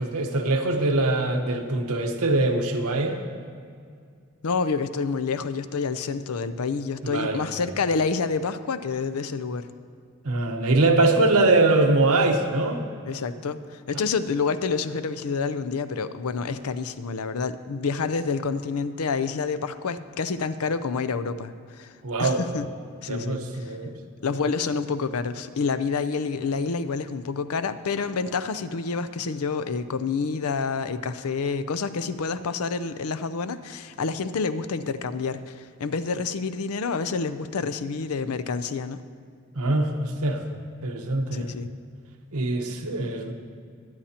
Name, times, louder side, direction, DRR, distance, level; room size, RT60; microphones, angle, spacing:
voice 1, 0.0-3.2 7.0-7.4 10.2-12.8 22.0-22.4 23.1-23.9 39.5-40.4 40.8-41.5 42.3-43.3, right 2 dB, 85° right, 4 dB, 1.0 m, -23 dB
voice 2, 4.4-9.7 13.0-21.9 22.2-22.7 23.0-23.4 24.2-39.0 41.3-41.7, left 4 dB, 85° left, 12 dB, 0.5 m, -28 dB
23.0 x 8.8 x 2.9 m, 2.2 s
head